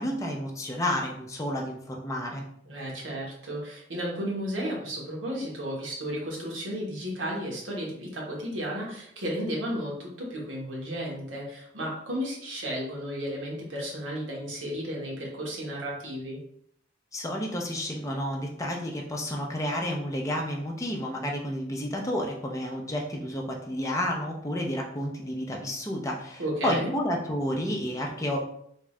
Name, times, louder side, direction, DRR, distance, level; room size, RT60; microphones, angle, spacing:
voice 1, 0.0-2.4 17.1-28.4, left 1 dB, 15° left, 0 dB, 0.6 m, -31 dB
voice 2, 2.6-16.4 26.4-26.9, equal, 80° right, -3 dB, 1.2 m, -33 dB
3.6 x 2.3 x 3.1 m, 0.69 s
head